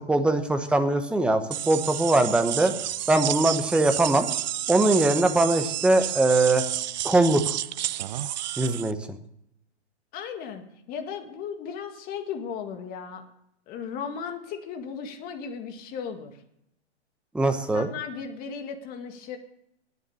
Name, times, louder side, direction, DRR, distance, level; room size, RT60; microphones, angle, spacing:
voice 1, 0.1-2.7 3.1-4.3 4.7-6.6 7.0-7.6 8.6-9.0 17.3-17.9, right 2 dB, 5° right, 7 dB, 1.0 m, -21 dB
sound 1, 1.5-8.9, right 13 dB, 40° right, 0.5 m, -31 dB
voice 2, 10.1-13.2 13.7-16.4 17.7-19.4, left 6 dB, 25° left, 5 dB, 1.9 m, -36 dB
20.5 x 7.3 x 6.9 m, 0.78 s
hypercardioid pair, 130°, 35 cm